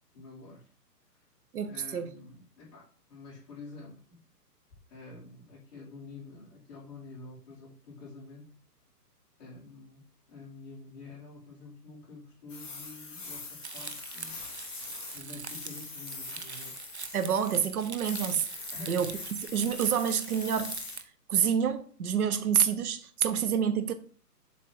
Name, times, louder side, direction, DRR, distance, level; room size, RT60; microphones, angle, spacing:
voice 1, 0.1-0.7 1.6-4.2 4.9-8.5 9.4-14.3 15.1-16.8 18.7-19.0, left 3 dB, 25° left, 3.2 m, -48 dB
voice 2, 1.5-2.1 17.1-18.5 18.9-19.1 19.5-20.8 21.3-23.9, right 8 dB, 65° right, 0.9 m, -27 dB
sound 1, 12.5-15.2 15.4-17.7 18.0-21.0, left 3 dB, 5° left, 1.2 m, -42 dB
Crumpling crinkling, 13.6-21.0, right 5 dB, 45° right, 0.5 m, -44 dB
7.3 x 3.3 x 4.6 m
hypercardioid pair, 175°, 49 cm